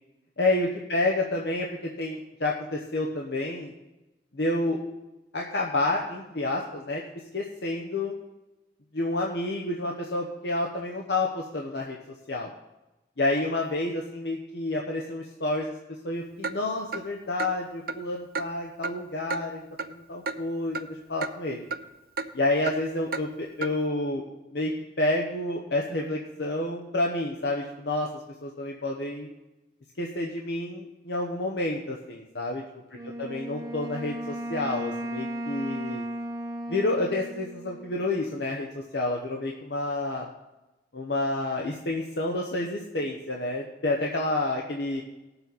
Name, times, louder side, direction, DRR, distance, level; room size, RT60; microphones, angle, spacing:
voice 1, 0.4-3.7 4.3-4.8 5.3-7.0 7.3-8.1 8.9-12.0 12.3-12.5 13.2-15.7 16.0-21.7 22.3-24.2 24.5-29.3 30.0-32.6 33.2-36.0 36.7-40.3 40.9-45.0, left 2 dB, 70° left, -1 dB, 1.0 m, -29 dB
Clock, 16.4-16.6 16.9-17.0 17.4-17.5 17.9-18.0 18.3-18.5 18.8-18.9 19.3-19.4 19.8-19.9 20.3-20.4 20.7-20.9 21.2-21.3 21.7-21.8 22.2-22.3 22.7-22.8 23.1-23.2 23.6-23.7, right 4 dB, 55° right, 0.6 m, -31 dB
Wind instrument woodwind instrument, 32.9-38.4, right 1 dB, 20° right, 0.9 m, -36 dB
18.5 x 7.0 x 4.1 m, 1.0 s
head